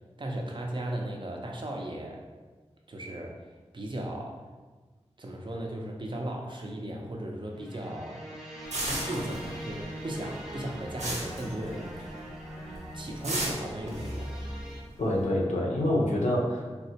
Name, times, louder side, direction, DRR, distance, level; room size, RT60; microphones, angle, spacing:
voice 1, 0.2-2.3 2.9-3.4 3.7-4.5 5.2-8.2 8.9-12.2 12.9-14.3, right 1 dB, 45° right, 0 dB, 0.5 m, -36 dB
sound 1, 7.5-14.8, equal, 5° right, 0.7 m, -41 dB
sound 2, 8.7-9.8 10.1-12.2 12.5-12.8 13.2-15.1, right 1 dB, 90° right, 0.7 m, -34 dB
voice 2, 15.0-16.8, left 1 dB, 85° left, -2 dB, 0.6 m, -26 dB
3.4 x 2.1 x 2.7 m, 1.3 s
wide cardioid pair, 70°, 12 cm